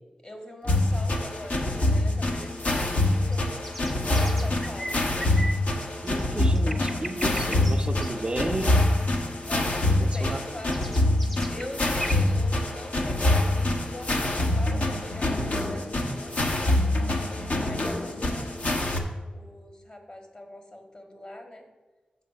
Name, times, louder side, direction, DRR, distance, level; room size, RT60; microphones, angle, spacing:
voice 1, 0.2-3.5 4.1-5.4 9.4-10.7 11.5-16.9 17.5-19.0 19.3-21.6, left 1 dB, 35° left, 4 dB, 1.6 m, -43 dB
sound 1, 0.7-19.0, left 1 dB, 55° left, 1.0 m, -25 dB
Nightingale Bird Sings his song, 3.3-12.3, equal, 10° left, 0.8 m, -39 dB
voice 2, 6.0-8.9 9.8-10.4 10.7-10.8, right 2 dB, 35° right, 7 dB, 0.5 m, -33 dB
7.5 x 6.3 x 5.6 m, 1.3 s
wide cardioid pair, 70°, 3 cm